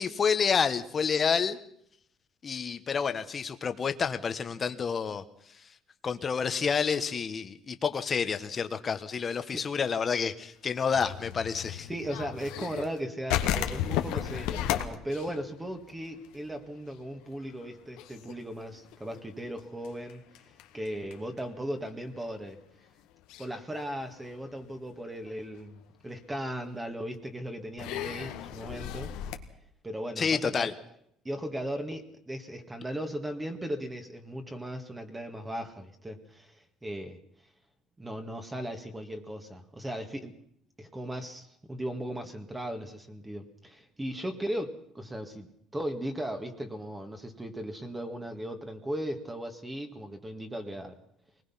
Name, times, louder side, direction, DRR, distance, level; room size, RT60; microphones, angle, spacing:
voice 1, 0.0-1.6 2.4-5.2 6.0-11.9 30.2-30.7, left 6 dB, 30° left, 10 dB, 1.3 m, -29 dB
sound 1, 10.8-13.0 13.3-16.5 16.8-16.9 17.3-17.7 18.0-21.4 22.1-22.2 23.3-23.5 24.1-24.7 25.3-25.4 26.7-26.8 27.8-29.4, left 12 dB, 85° left, 1.6 m, -34 dB
voice 2, 11.9-20.2 20.7-22.6 23.4-29.1 29.8-30.7 31.3-37.2 38.0-40.3 40.8-51.0, equal, 10° right, 6 dB, 1.9 m, -37 dB
23.0 x 20.0 x 5.8 m, 0.70 s
cardioid pair, 135°, 0 cm